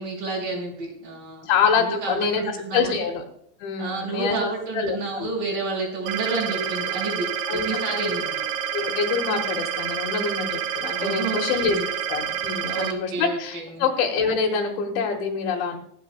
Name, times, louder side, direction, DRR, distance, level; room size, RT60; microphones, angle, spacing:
voice 1, 0.0-1.5 2.0-3.0 3.8-8.4 10.9-11.8 12.7-13.8, right 3 dB, 50° right, -2 dB, 6.9 m, -30 dB
voice 2, 1.4-3.2 3.6-4.4 4.7-5.3 7.5-7.8 8.7-15.8, left 5 dB, 80° left, -2 dB, 3.8 m, -26 dB
sound 1, 6.1-12.9, right 9 dB, 70° right, 3.0 m, -28 dB
26.0 x 9.1 x 2.3 m, 0.66 s
omnidirectional pair, 5.3 m